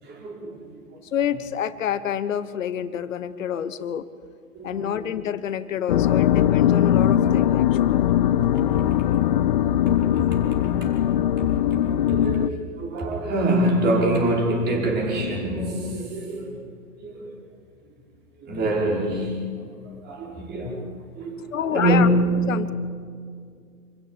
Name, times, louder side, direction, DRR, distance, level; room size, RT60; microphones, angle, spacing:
voice 1, 0.0-1.0 4.5-5.1 8.5-9.2 9.9-10.1 10.4-11.0 11.7-16.7 17.0-17.3 18.4-20.8 21.1-22.2, right 1 dB, 20° right, 0 dB, 5.1 m, -26 dB
voice 2, 1.0-4.1 4.6-8.0 21.5-22.1 22.5-22.7, left 9 dB, 55° left, 14 dB, 1.1 m, -28 dB
sound 1, 5.9-12.5, left 11 dB, 30° left, 0.6 m, -20 dB
27.0 x 15.5 x 8.9 m, 2.2 s
figure-of-eight pair, 125°, 46 cm